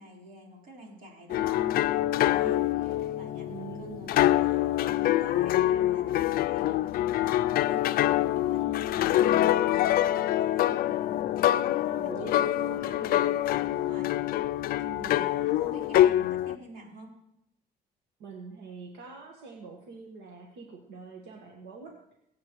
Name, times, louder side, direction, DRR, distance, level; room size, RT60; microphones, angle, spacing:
voice 1, 0.0-13.4 13.7-14.1 14.4-14.5 15.0-17.1, right 1 dB, 60° right, -2 dB, 4.2 m, -49 dB
sound 1, 1.3-16.6, left 13 dB, 60° left, 0.4 m, -25 dB
voice 2, 3.5-4.2 11.8-13.1 14.8-15.2 18.2-22.0, right 4 dB, 85° right, 1 dB, 1.6 m, -44 dB
21.5 x 8.3 x 3.1 m, 0.82 s
cardioid pair, 110°, 17 cm